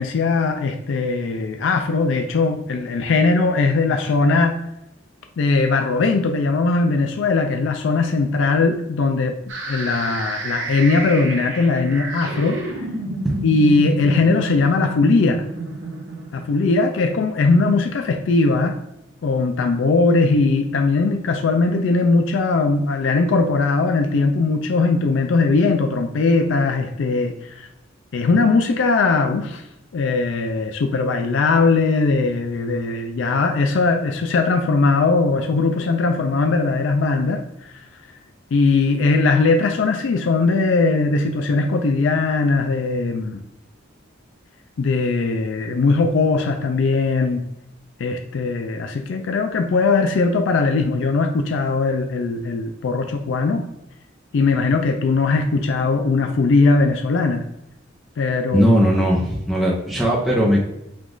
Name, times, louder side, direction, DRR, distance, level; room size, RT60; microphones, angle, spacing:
voice 1, 0.0-4.6 5.4-9.4 9.7-12.6 13.4-15.4 16.3-18.8 19.2-27.7 28.1-29.6 29.9-37.7 38.5-43.4 44.8-47.4 48.0-53.6 54.3-57.4 58.2-58.8, left 3 dB, 70° left, 5 dB, 0.4 m, -19 dB
sound 1, 9.5-17.4, right 2 dB, 70° right, 1.0 m, -30 dB
voice 2, 58.5-60.6, equal, ahead, -5 dB, 0.6 m, -18 dB
5.0 x 2.4 x 3.7 m, 0.83 s
head